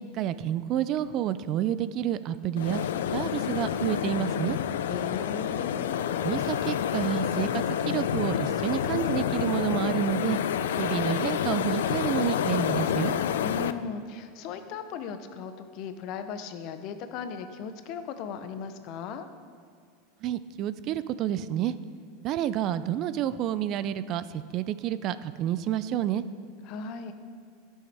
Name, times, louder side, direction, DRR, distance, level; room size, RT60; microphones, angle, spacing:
voice 1, 0.0-2.8 3.1-4.6 6.2-10.4 10.8-13.2 20.2-21.8 22.2-26.2, right 11 dB, 45° right, 15 dB, 0.3 m, -29 dB
sound 1, 2.6-13.7, left 9 dB, 85° left, 0.3 m, -28 dB
voice 2, 4.9-6.0 13.4-19.3 26.6-27.1, left 6 dB, 55° left, 9 dB, 0.7 m, -37 dB
11.5 x 6.3 x 3.4 m, 2.2 s
supercardioid pair, 120°, 0 cm